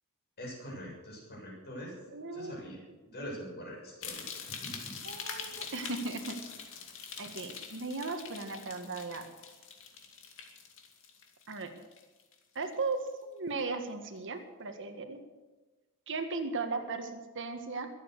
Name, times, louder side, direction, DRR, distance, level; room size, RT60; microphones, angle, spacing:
voice 1, 0.4-1.9 2.3-5.0, equal, 50° left, -2 dB, 7.3 m, -44 dB
voice 2, 2.1-2.7 5.0-6.4 7.2-9.2 11.5-11.7 12.6-15.2 16.1-17.9, right 3 dB, 60° right, 6 dB, 1.7 m, -37 dB
sound 1, 4.0-12.3 12.6-13.1 13.6-13.7, left 6 dB, 65° left, 2.4 m, -44 dB
23.0 x 9.0 x 6.7 m, 1.2 s
head